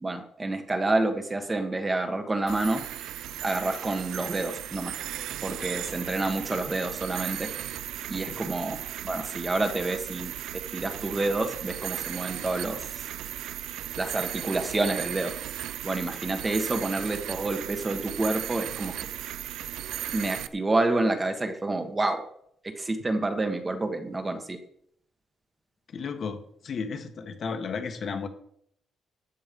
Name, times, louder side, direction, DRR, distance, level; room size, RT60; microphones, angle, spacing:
voice 1, 0.0-2.8 3.4-4.9 5.4-7.5 8.1-8.8 9.0-10.3 10.7-13.0 13.9-15.3 15.8-19.1 20.1-22.2 22.6-24.6, right 2 dB, 15° right, 6 dB, 1.3 m, -28 dB
sound 1, 2.5-20.5, right 12 dB, 85° right, 0.6 m, -36 dB
voice 2, 25.9-28.3, left 5 dB, 40° left, 6 dB, 1.5 m, -33 dB
13.5 x 9.0 x 5.3 m, 0.68 s
cardioid pair, 155°, 0 cm